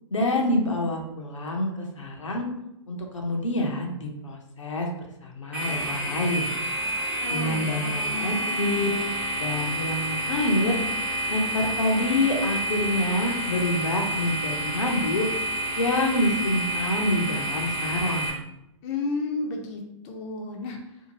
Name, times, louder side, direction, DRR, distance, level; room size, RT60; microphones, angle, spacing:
voice 1, 0.1-2.5 2.9-4.9 5.2-6.5 7.3-9.0 9.4-10.8 11.3-15.3 15.8-18.3, left 1 dB, 80° left, 1 dB, 0.7 m, -27 dB
sound 1, 5.5-18.3, right 1 dB, 5° right, 0.6 m, -29 dB
voice 2, 7.2-8.4 18.8-20.8, left 3 dB, 35° left, 1 dB, 0.5 m, -32 dB
2.7 x 2.4 x 2.8 m, 0.85 s
figure-of-eight pair, 115°, 16 cm